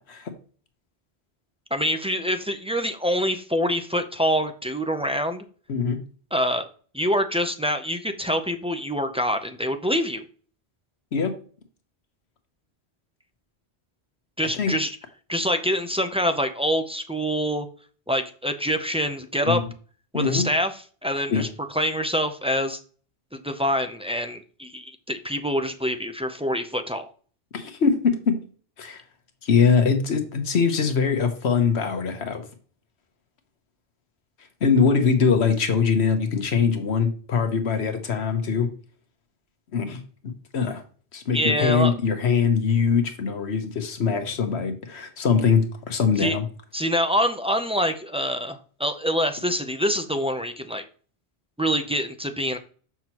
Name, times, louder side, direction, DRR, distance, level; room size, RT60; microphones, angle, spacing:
voice 1, 1.7-5.4 6.3-6.7 6.9-10.2 14.4-15.0 15.3-17.7 18.1-19.6 20.1-20.7 21.0-22.8 23.4-27.1 41.3-41.9 46.2-46.4 46.7-50.8 51.6-52.6, equal, 10° right, 6 dB, 0.4 m, -25 dB
voice 2, 5.7-6.0 11.1-11.3 14.6-14.8 19.4-19.7 20.1-20.5 21.3-21.5 27.5-28.4 28.8-29.0 29.4-32.4 34.6-38.7 39.7-40.0 40.5-40.8 41.1-46.4, left 6 dB, 80° left, 7 dB, 1.3 m, -22 dB
7.0 x 5.9 x 2.9 m, 0.41 s
omnidirectional pair, 1.1 m